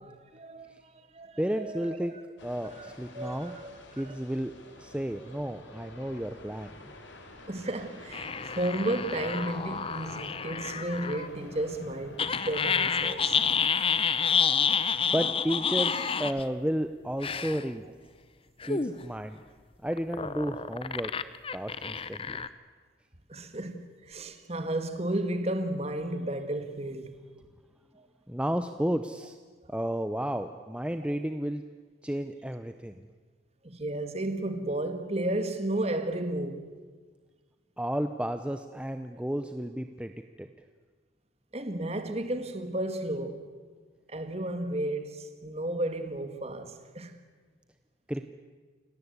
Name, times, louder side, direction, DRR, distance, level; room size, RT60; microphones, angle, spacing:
voice 1, 0.0-2.1 2.6-3.7 4.0-4.2 7.5-13.4 23.3-27.2 28.0-28.1 33.6-36.7 41.5-43.5 44.1-47.1, right 1 dB, 30° right, 1.9 m, -33 dB
voice 2, 1.4-3.5 3.9-4.5 4.8-6.9 15.1-17.9 18.6-19.4 19.8-21.1 21.5-22.4 28.3-29.4 29.7-31.6 32.0-33.1 37.8-40.5 48.1-48.3, equal, 5° right, 0.7 m, -32 dB
sound 1, 2.4-13.5, left 2 dB, 70° left, 3.8 m, -49 dB
sound 2, 8.1-11.3 12.2-16.4 17.2-17.6 18.6-19.0 19.9-22.5, left 6 dB, 30° left, 0.8 m, -29 dB
29.0 x 18.5 x 8.2 m
head